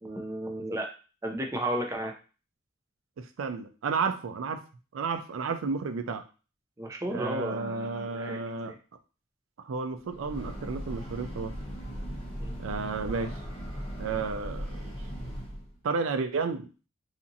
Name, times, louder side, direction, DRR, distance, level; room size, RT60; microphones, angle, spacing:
voice 1, 0.0-0.9 1.2-2.1 6.1-6.2 6.8-8.8 12.4-12.6, right 1 dB, 15° right, 3 dB, 0.4 m, -34 dB
voice 2, 3.2-4.6 4.9-6.2 7.1-8.7 9.6-11.5 12.6-13.3 14.0-14.7 15.8-16.7, right 4 dB, 80° right, 8 dB, 0.4 m, -32 dB
Breathing / Train, 10.0-15.8, equal, 30° left, 1.0 m, -38 dB
2.8 x 2.4 x 2.6 m, 0.35 s
head